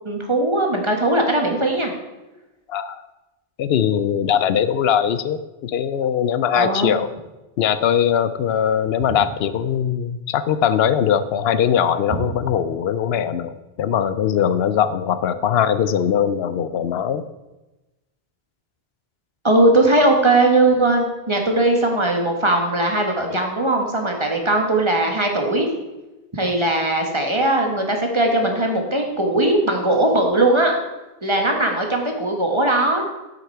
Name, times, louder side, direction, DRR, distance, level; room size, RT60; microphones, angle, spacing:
voice 1, 0.0-1.9 6.5-7.0 12.1-12.2 19.4-25.7 26.3-30.8 31.2-33.0, right 2 dB, 30° right, 2 dB, 1.5 m, -19 dB
voice 2, 2.7-3.0 3.6-7.1 7.6-17.3 23.3-23.4, left 8 dB, 75° left, 13 dB, 0.8 m, -21 dB
9.9 x 8.0 x 4.6 m, 1.1 s
omnidirectional pair, 1.0 m